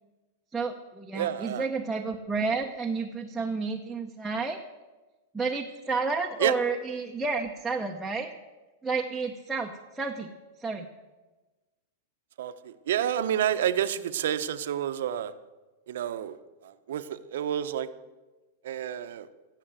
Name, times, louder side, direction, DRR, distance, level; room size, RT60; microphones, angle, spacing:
voice 1, 0.5-4.6 5.3-8.3 8.8-10.3 10.6-10.9, right 4 dB, 5° right, -1 dB, 0.8 m, -31 dB
voice 2, 1.1-1.7 6.4-6.5 12.4-15.3 15.9-16.4 16.6-17.9 18.6-19.3, right 10 dB, 75° right, 11 dB, 0.9 m, -29 dB
16.0 x 7.5 x 7.5 m, 1.2 s
supercardioid pair, 160°, 0 cm